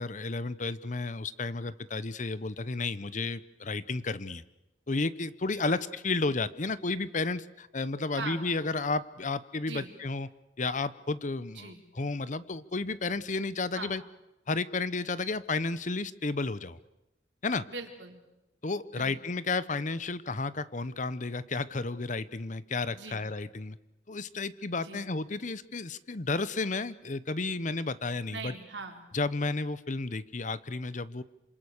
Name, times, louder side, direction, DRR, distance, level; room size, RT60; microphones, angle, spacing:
voice 1, 0.0-4.4 4.9-10.3 10.6-14.0 14.5-16.8 17.4-17.7 18.6-23.8 24.1-28.5 29.1-31.2, left 3 dB, 45° left, 16 dB, 0.9 m, -32 dB
voice 2, 8.1-8.5 9.7-9.9 11.5-11.8 13.7-14.0 17.7-18.2 19.0-19.2 22.9-23.3 24.8-25.0 28.3-29.0, right 4 dB, 85° right, 4 dB, 3.9 m, -41 dB
27.5 x 26.0 x 6.6 m, 0.93 s
head